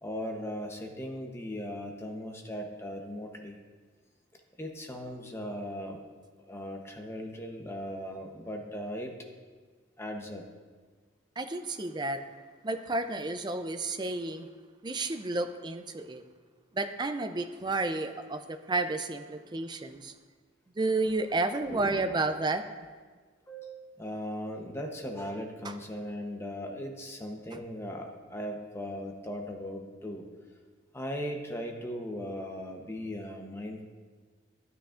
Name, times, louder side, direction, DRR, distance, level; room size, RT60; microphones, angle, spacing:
voice 1, 0.0-3.6 4.6-6.0 6.5-9.1 10.0-10.4 21.7-22.2 23.5-30.3 30.9-33.8, equal, 15° left, 2 dB, 0.8 m, -38 dB
voice 2, 11.4-12.2 12.6-14.5 14.8-16.2 16.7-20.1 20.8-22.6 27.5-27.6, right 2 dB, 20° right, 8 dB, 0.4 m, -31 dB
13.0 x 9.2 x 2.5 m, 1.5 s
head